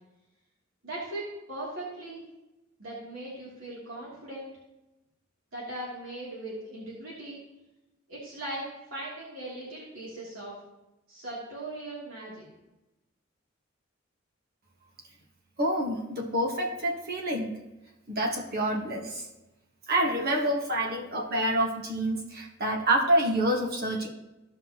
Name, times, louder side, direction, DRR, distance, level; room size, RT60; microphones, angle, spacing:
voice 1, 0.8-2.2 2.8-4.5 5.5-7.4 8.1-8.7 8.9-10.5 11.1-12.4, right 1 dB, 85° right, -6 dB, 3.0 m, -39 dB
voice 2, 15.6-17.5 18.1-19.2 19.9-24.1, right 1 dB, 50° right, 0 dB, 1.4 m, -27 dB
15.5 x 5.7 x 3.0 m, 1.0 s
head